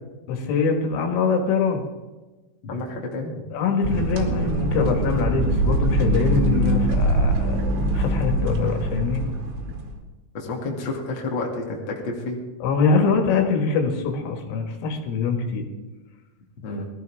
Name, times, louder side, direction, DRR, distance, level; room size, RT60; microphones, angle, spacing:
voice 1, 0.3-1.8 3.5-9.2 12.6-15.7, left 5 dB, 80° left, 4 dB, 4.2 m, -23 dB
voice 2, 2.6-3.4 10.3-12.4 16.6-16.9, left 2 dB, 35° left, -1 dB, 2.1 m, -30 dB
sound 1, 3.8-10.0, right 1 dB, 85° right, 4.6 m, -23 dB
21.0 x 14.0 x 3.6 m, 1.2 s
omnidirectional pair, 5.6 m